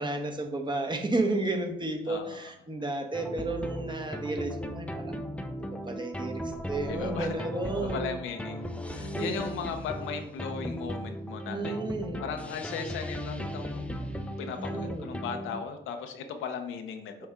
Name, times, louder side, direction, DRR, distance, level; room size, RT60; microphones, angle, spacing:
voice 1, 0.0-5.1 5.6-8.2 9.0-9.5 11.5-12.2 14.4-15.1 17.2-17.3, right 2 dB, 25° right, 4 dB, 1.2 m, -32 dB
voice 2, 2.0-2.5 6.9-7.4 7.7-11.8 12.2-17.3, left 6 dB, 90° left, 6 dB, 0.9 m, -37 dB
sound 1, 3.1-15.6, equal, 5° left, 0.7 m, -37 dB
7.6 x 4.3 x 3.8 m, 0.76 s
cardioid pair, 90°, 20 cm